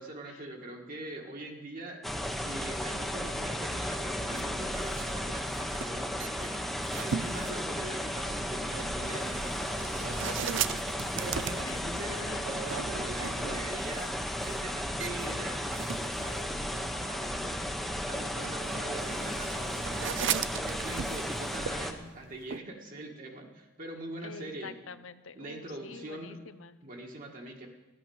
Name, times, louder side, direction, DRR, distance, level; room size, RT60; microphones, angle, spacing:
voice 1, 0.0-2.0 2.3-24.7 25.3-26.4 26.8-27.7, right 2 dB, 45° right, 1 dB, 1.7 m, -43 dB
sound 1, 2.0-21.9, equal, ahead, 0.9 m, -34 dB
sound 2, 4.3-22.6, right 8 dB, 65° right, 0.5 m, -39 dB
voice 2, 11.6-12.5 24.2-26.8, left 5 dB, 75° left, 13 dB, 0.8 m, -47 dB
14.0 x 10.5 x 7.0 m, 1.2 s
head